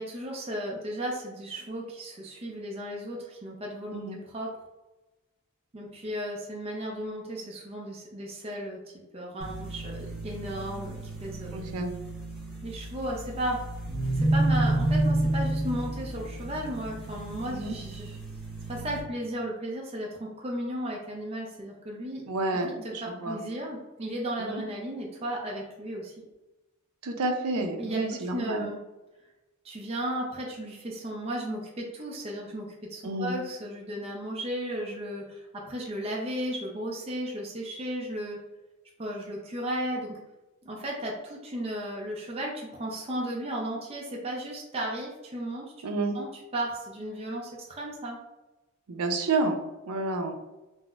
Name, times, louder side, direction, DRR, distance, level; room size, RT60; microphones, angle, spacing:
voice 1, 0.0-4.5 5.7-8.8 9.1-11.6 12.6-13.6 14.1-18.2 18.7-22.2 22.5-26.2 27.8-28.8 29.6-38.4 39.0-40.2 40.6-45.7 46.1-48.2, right 1 dB, 25° right, -2 dB, 0.5 m, -35 dB
sound 1, 9.4-19.0, right 1 dB, ahead, 1.2 m, -30 dB
voice 2, 11.5-11.9 17.5-17.8 22.3-23.4 24.4-24.6 27.0-28.7 33.0-33.4 45.8-46.2 48.9-49.6 49.9-50.3, right 2 dB, 90° right, 5 dB, 0.5 m, -30 dB
3.8 x 2.0 x 2.3 m, 1.1 s
head